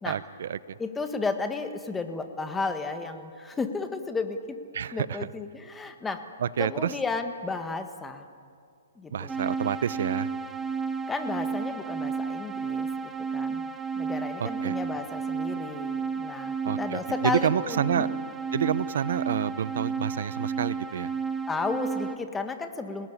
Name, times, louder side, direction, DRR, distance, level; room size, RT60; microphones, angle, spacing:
voice 1, 0.0-0.8 4.7-5.3 6.4-6.9 9.1-10.3 14.4-14.8 16.6-18.1 18.5-21.1, right 8 dB, 60° right, 17 dB, 0.9 m, -29 dB
voice 2, 0.8-4.6 4.9-6.2 6.6-8.3 9.0-9.3 11.1-13.6 13.9-18.2 21.5-23.1, left 4 dB, 10° left, 7 dB, 1.5 m, -33 dB
sound 1, 9.3-22.2, right 5 dB, 5° right, 0.8 m, -32 dB
27.0 x 19.0 x 9.8 m, 2.3 s
hypercardioid pair, 160°, 0 cm